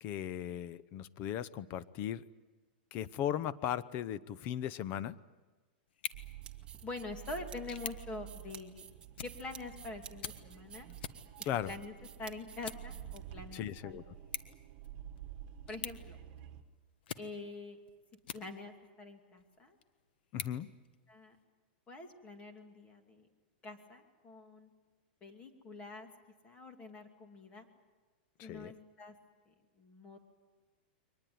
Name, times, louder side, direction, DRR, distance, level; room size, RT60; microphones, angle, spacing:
voice 1, 0.0-2.3 2.9-5.2 11.4-11.7 13.5-14.0 20.3-20.7 28.4-28.7, left 10 dB, 35° left, 16 dB, 0.8 m, -37 dB
sound 1, 5.9-18.9 19.4-21.4, left 9 dB, 75° left, 1.3 m, -49 dB
sound 2, 6.1-16.6, right 11 dB, 45° right, 1.6 m, -50 dB
sound 3, 6.2-13.6, right 8 dB, 20° right, 1.5 m, -53 dB
voice 2, 6.8-8.9 9.2-10.9 11.6-11.9 12.2-14.0 14.5-14.6 15.7-16.2 17.2-17.8 18.3-19.8 21.1-21.4 21.9-23.3 23.6-24.7 25.2-26.1 26.4-27.7 28.4-29.1 29.5-30.2, left 3 dB, 20° left, 5 dB, 2.5 m, -45 dB
23.5 x 19.5 x 9.4 m, 1.3 s
supercardioid pair, 150°, 5 cm